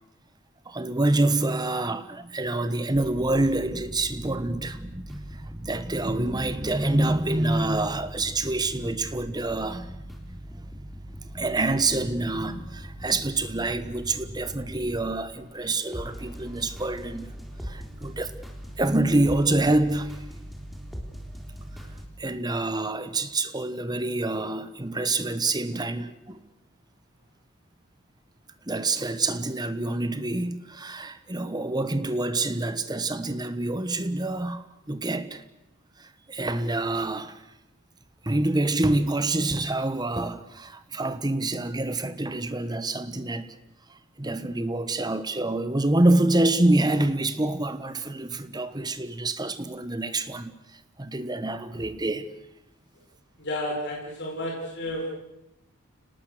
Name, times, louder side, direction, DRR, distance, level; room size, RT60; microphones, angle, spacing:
voice 1, 0.7-10.7 11.2-17.3 17.6-18.3 18.8-20.2 22.2-26.4 28.7-35.4 36.0-37.4 38.2-43.6 43.9-52.3, right 2 dB, 20° right, 1.1 m, -27 dB
sound 1, 2.9-22.0, equal, ahead, 3.6 m, -41 dB
voice 2, 53.4-55.1, left 1 dB, 50° left, 5.2 m, -31 dB
29.5 x 19.0 x 6.6 m
head